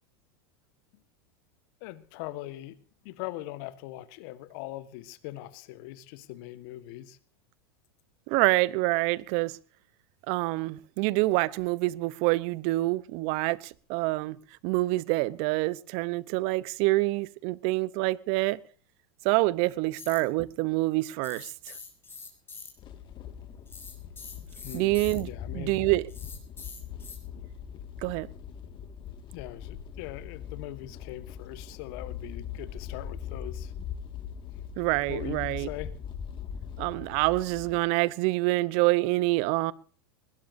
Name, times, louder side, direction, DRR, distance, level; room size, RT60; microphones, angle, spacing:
voice 1, 1.8-2.8 3.0-7.2 24.6-25.0 25.3-25.8 29.3-33.7 35.1-36.0, left 15 dB, 60° left, 1.5 m, -41 dB
voice 2, 8.3-9.6 10.3-14.4 14.6-18.6 19.2-21.5 24.7-25.3 25.5-26.1 28.0-28.3 34.8-35.7 36.8-39.7, right 21 dB, 55° right, 0.8 m, -26 dB
sound 1, 20.0-20.2 21.2-22.7 23.7-25.2 26.1-27.2, left 5 dB, 15° left, 7.3 m, -44 dB
sound 2, 22.8-37.8, left 8 dB, 35° left, 2.0 m, -41 dB
21.0 x 19.5 x 2.7 m
hypercardioid pair, 95°, 13 cm